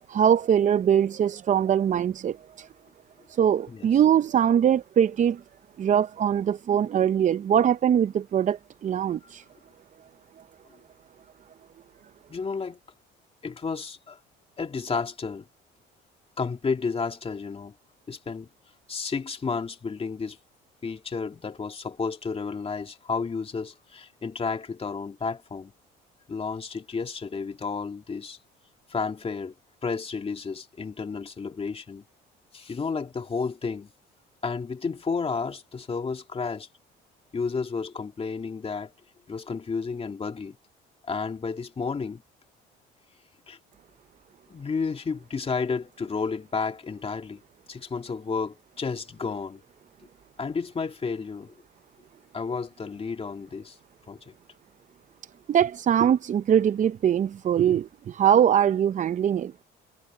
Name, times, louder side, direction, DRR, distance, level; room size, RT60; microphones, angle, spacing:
voice 1, 0.1-2.7 3.4-5.4 5.8-9.4 55.5-59.6, right 9 dB, 35° right, 0.5 m, -22 dB
voice 2, 12.3-12.8 13.4-14.2 14.6-15.5 16.4-17.7 18.1-18.5 18.9-20.4 20.8-25.7 26.3-28.4 28.9-29.5 29.8-32.0 32.5-33.9 34.4-36.7 37.3-38.9 39.3-40.6 41.1-42.2 43.5-43.6 44.5-47.4 47.7-49.6 50.4-51.5 52.3-53.8 54.1-54.3, left 5 dB, 30° left, 2.4 m, -31 dB
cardioid pair, 95°, 21 cm